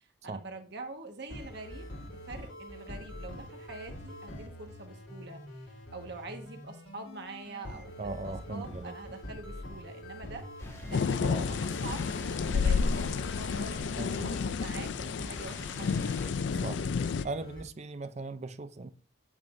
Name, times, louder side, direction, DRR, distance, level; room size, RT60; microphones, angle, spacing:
voice 1, 0.0-10.5 10.9-16.1, right 3 dB, 55° right, 1.5 m, -45 dB
sound 1, 1.3-17.6, left 1 dB, 85° left, 2.1 m, -44 dB
voice 2, 8.0-9.0 11.2-11.5 14.0-14.3 16.5-16.8 17.2-18.9, right 3 dB, 35° right, 0.4 m, -38 dB
sound 2, 10.6-16.3, left 1 dB, 10° left, 1.4 m, -50 dB
sound 3, 10.9-17.2, left 5 dB, 60° left, 0.4 m, -30 dB
8.7 x 8.7 x 2.6 m
head